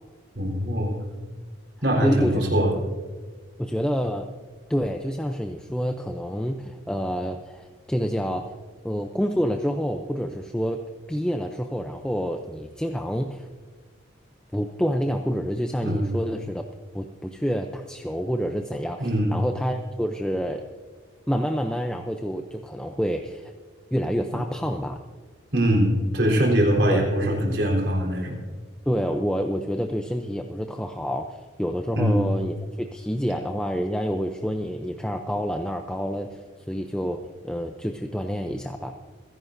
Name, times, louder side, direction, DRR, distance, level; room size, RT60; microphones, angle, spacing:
voice 1, 0.4-1.0 1.8-2.7 15.8-16.1 19.0-19.3 25.5-28.4 32.0-32.2, equal, 60° right, -1 dB, 3.9 m, -22 dB
voice 2, 2.0-2.4 3.6-4.3 4.7-8.5 8.8-10.8 11.1-13.5 14.5-16.6 16.9-20.6 21.3-23.5 23.9-25.0 26.9-27.1 28.9-36.4 36.7-38.9, equal, 5° left, 4 dB, 0.5 m, -28 dB
28.0 x 11.0 x 2.6 m, 1.5 s
head